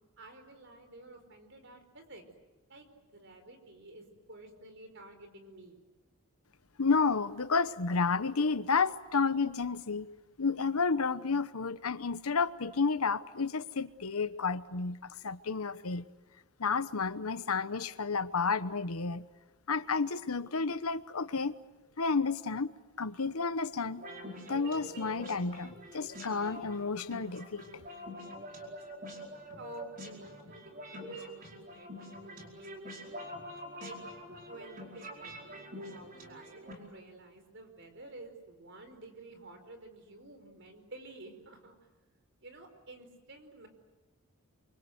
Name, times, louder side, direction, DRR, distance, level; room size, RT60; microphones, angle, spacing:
voice 1, 0.2-2.2 2.7-2.9 3.1-5.8 29.6-31.9 32.2-33.2 33.8-34.0 34.5-41.8 42.4-43.7, right 2 dB, 55° right, 4.8 m, -51 dB
voice 2, 6.8-10.1 10.4-15.0 15.2-16.0 16.6-19.2 19.7-21.6 22.0-22.7 23.0-24.0 24.5-27.8, left 4 dB, 80° left, 1.0 m, -31 dB
sound 1, 24.0-36.7, equal, 40° right, 4.9 m, -46 dB
28.5 x 24.5 x 8.0 m
head